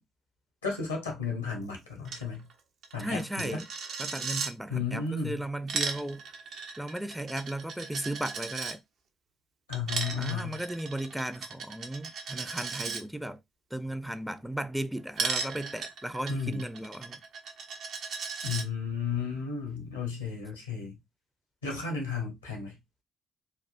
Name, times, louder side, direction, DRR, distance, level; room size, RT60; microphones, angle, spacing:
voice 1, 0.6-2.5 2.9-3.5 4.7-5.4 9.7-10.6 16.3-16.6 18.4-21.0 21.6-22.8, left 5 dB, 90° left, 0.9 m, -33 dB
Coin (dropping), 2.0-2.2 2.5-2.6 2.8-4.5 5.4-8.7 9.7-13.0 15.2-18.6, right 5 dB, 60° right, 0.5 m, -36 dB
voice 2, 3.0-3.7 4.0-6.2 6.8-8.8 10.2-13.4 13.7-17.2, right 1 dB, 5° right, 0.4 m, -35 dB
3.4 x 2.3 x 2.4 m
figure-of-eight pair, 45°, 0 cm